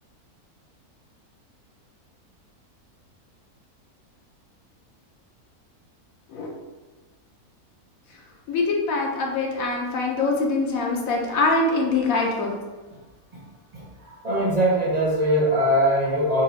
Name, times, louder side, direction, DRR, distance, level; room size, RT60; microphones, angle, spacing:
voice 1, 8.5-12.5, left 3 dB, 70° left, 0 dB, 1.0 m, -23 dB
voice 2, 13.7-16.4, equal, 55° right, -4 dB, 0.4 m, -22 dB
4.1 x 2.3 x 3.8 m, 1.3 s
omnidirectional pair, 1.6 m